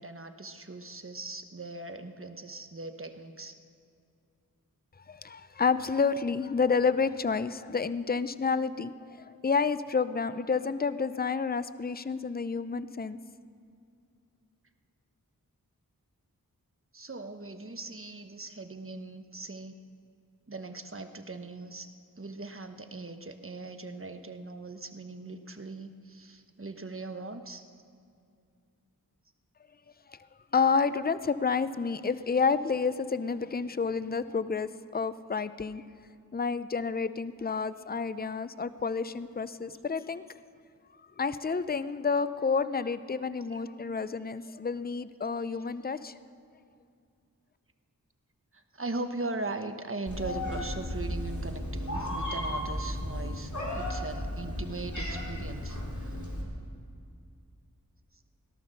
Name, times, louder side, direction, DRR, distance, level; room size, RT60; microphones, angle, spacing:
voice 1, 0.0-3.5 16.9-19.8 20.5-21.9 22.2-27.6 43.5-43.6 48.5-56.2, right 3 dB, 35° right, 7 dB, 1.1 m, -40 dB
voice 2, 5.1-13.2 30.1-30.2 30.5-35.8 36.3-40.2 41.2-46.1, left 5 dB, 25° left, 14 dB, 0.5 m, -29 dB
Meow, 50.1-56.4, left 1 dB, 55° left, 3.5 m, -34 dB
17.5 x 12.0 x 6.7 m, 2.4 s
wide cardioid pair, 45°, 36 cm